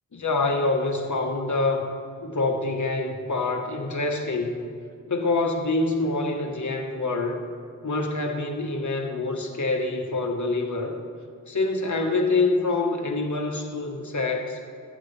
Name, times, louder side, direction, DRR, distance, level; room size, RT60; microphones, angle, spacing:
voice 1, 0.1-1.9 2.2-4.5 5.1-7.4 7.8-11.0 11.5-14.6, left 3 dB, 55° left, 2 dB, 1.2 m, -26 dB
13.0 x 8.1 x 3.2 m, 2.3 s
wide cardioid pair, 60°, 35 cm